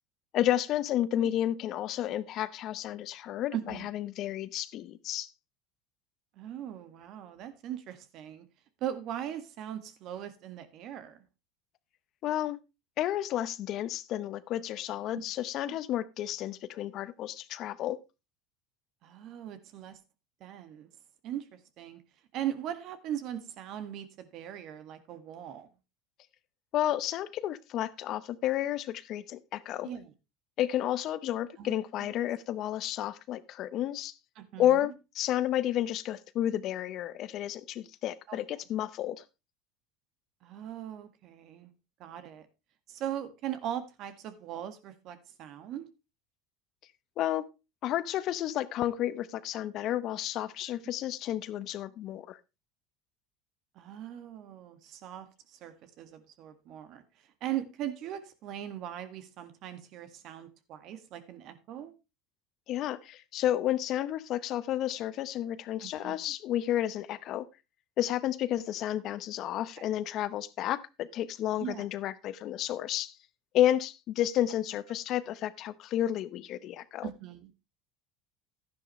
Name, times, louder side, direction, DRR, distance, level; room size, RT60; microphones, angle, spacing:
voice 1, 0.3-5.3 12.2-12.6 13.0-18.0 26.7-29.9 30.6-34.1 34.6-39.2 47.2-47.5 47.8-52.4 62.7-67.5 68.0-73.2 73.5-77.1, left 12 dB, 55° left, 0.8 m, -31 dB
voice 2, 3.5-3.9 6.3-8.4 8.8-11.2 15.1-15.2 15.7-15.8 19.0-20.0 20.4-20.9 21.2-22.0 22.3-25.7 29.8-30.1 31.6-31.7 32.0-32.1 34.3-34.9 38.3-38.4 40.4-41.7 42.0-42.5 42.9-45.9 53.7-57.0 57.4-61.9 65.8-66.1 69.8-69.9 71.5-71.9 77.0-77.5, right 11 dB, 55° right, 1.7 m, -39 dB
12.0 x 10.5 x 3.1 m
hypercardioid pair, 90°, 0 cm